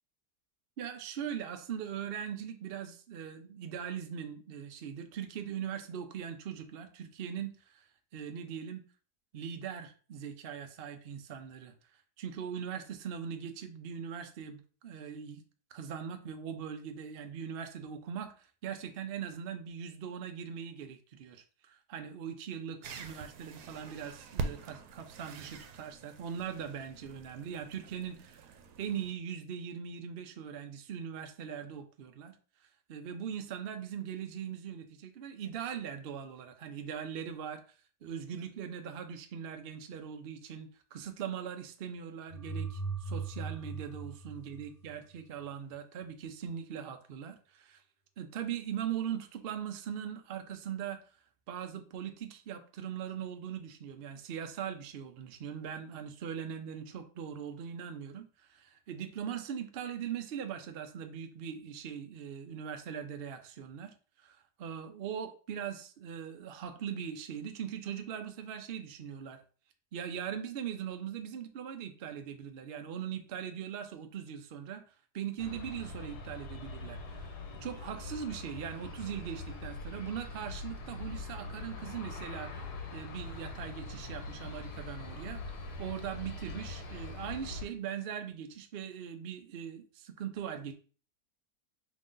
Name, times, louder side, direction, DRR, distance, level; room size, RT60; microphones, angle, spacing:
voice 1, 0.8-7.9 8.1-8.8 9.3-11.7 12.2-15.4 15.7-32.3 32.9-37.6 38.0-47.8 48.2-51.0 51.5-69.4 69.9-74.8 75.1-77.4 77.6-82.6 82.9-90.7, right 8 dB, 65° right, 0.5 m, -40 dB
sound 1, 22.8-29.1, right 4 dB, 90° right, 1.2 m, -44 dB
sound 2, 42.3-45.2, right 4 dB, 40° left, 0.8 m, -39 dB
Aircraft, 75.4-87.7, left 3 dB, 80° left, 1.3 m, -43 dB
5.4 x 3.1 x 2.5 m
omnidirectional pair, 1.7 m